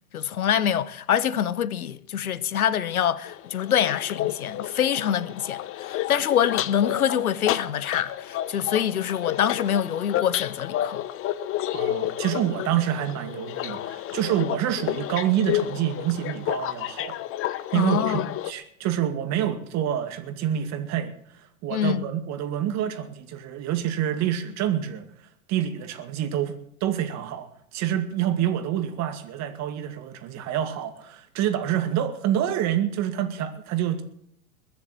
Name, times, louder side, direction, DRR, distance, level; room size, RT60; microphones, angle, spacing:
voice 1, 0.1-11.0 17.7-18.2 21.7-22.1, left 9 dB, 90° left, 1.1 m, -25 dB
sound 1, 3.2-18.5, left 13 dB, 30° left, 0.9 m, -31 dB
voice 2, 11.7-17.2 17.5-26.6 26.8-34.0, right 10 dB, 40° right, 2.2 m, -27 dB
21.0 x 7.5 x 7.7 m
hypercardioid pair, 110°, 42 cm